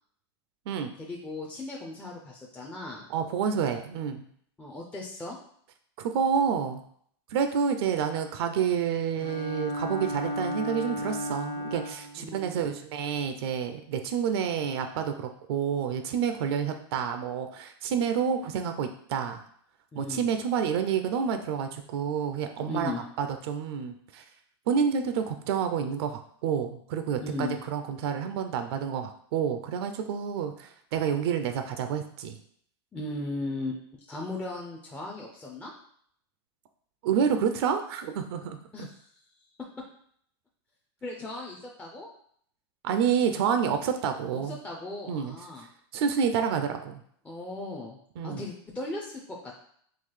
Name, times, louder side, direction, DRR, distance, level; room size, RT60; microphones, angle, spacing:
voice 1, 1.0-3.1 4.6-5.4 12.2-12.7 19.9-20.2 22.7-23.0 27.2-27.6 32.9-33.8 34.1-35.7 38.7-39.1 41.0-42.1 44.3-45.7 47.2-48.0 48.2-49.6, left 2 dB, 10° left, -2 dB, 0.4 m, -37 dB
voice 2, 3.1-4.2 6.0-6.8 7.3-15.1 15.5-19.4 20.0-24.2 24.7-32.3 37.0-38.9 42.8-44.6 45.1-45.3 45.9-47.0 48.2-48.4, right 7 dB, 65° right, 7 dB, 0.4 m, -29 dB
Bowed string instrument, 9.2-12.2, equal, 40° left, 0.7 m, -33 dB
3.8 x 2.3 x 3.1 m, 0.63 s
supercardioid pair, 145°, 14 cm